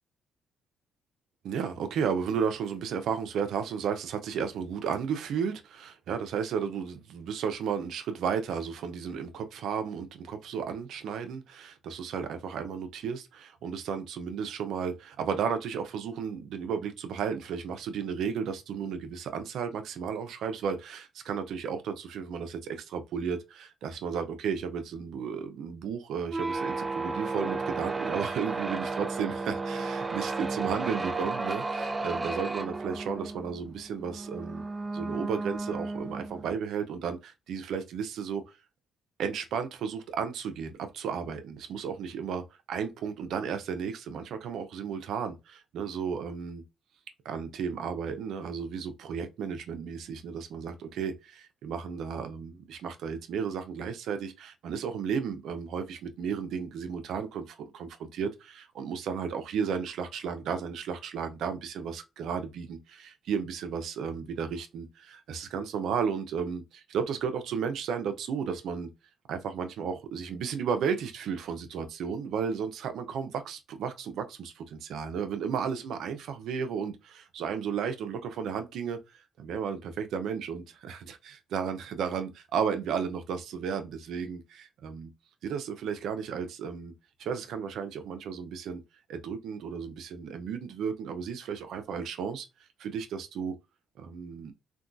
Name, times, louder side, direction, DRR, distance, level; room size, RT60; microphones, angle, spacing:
voice 1, 1.4-34.6 34.9-38.4 39.2-42.4 42.7-46.6 47.2-68.9 69.3-85.1 85.4-86.9 87.2-88.8 89.1-92.5 92.8-93.5 94.0-94.5, right 6 dB, 75° right, 0.5 m, -33 dB
sound 1, 26.2-36.6, right 3 dB, 25° right, 0.3 m, -33 dB
3.5 x 2.2 x 2.5 m
cardioid pair, 90°, 0 cm